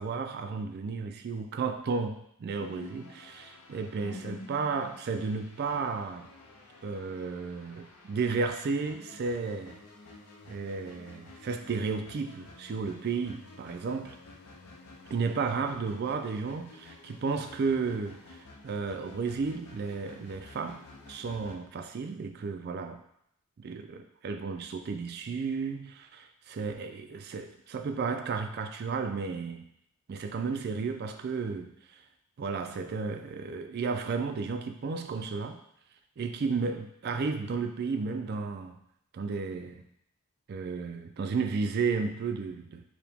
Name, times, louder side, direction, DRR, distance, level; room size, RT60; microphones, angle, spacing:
voice 1, 0.0-6.3 6.8-9.8 10.5-14.2 15.1-18.4 18.6-23.0 23.6-29.7 30.1-31.7 32.4-35.6 36.2-38.8 39.1-39.9 40.5-42.8, right 4 dB, 45° right, 7 dB, 0.3 m, -33 dB
sound 1, 2.6-21.6, left 3 dB, 80° left, 0.6 m, -51 dB
4.7 x 2.1 x 3.4 m, 0.74 s
head